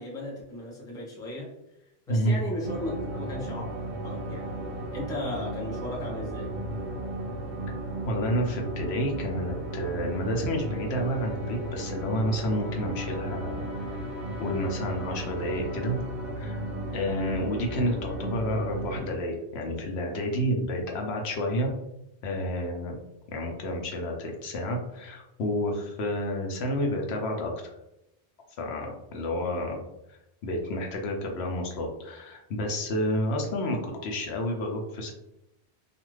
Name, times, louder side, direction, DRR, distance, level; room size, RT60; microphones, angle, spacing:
voice 1, 0.0-1.5 2.1-3.7 4.0-4.5 4.9-6.5, left 1 dB, 5° left, -3 dB, 0.5 m, -36 dB
voice 2, 2.1-2.4 8.1-14.1 14.4-16.0 16.4-16.6 16.9-21.7 22.2-23.0 23.3-27.5 28.6-35.1, equal, 70° left, 1 dB, 0.9 m, -30 dB
sound 1, 2.6-19.0, right 1 dB, 50° right, 0.7 m, -35 dB
2.5 x 2.4 x 3.1 m, 0.87 s
omnidirectional pair, 1.1 m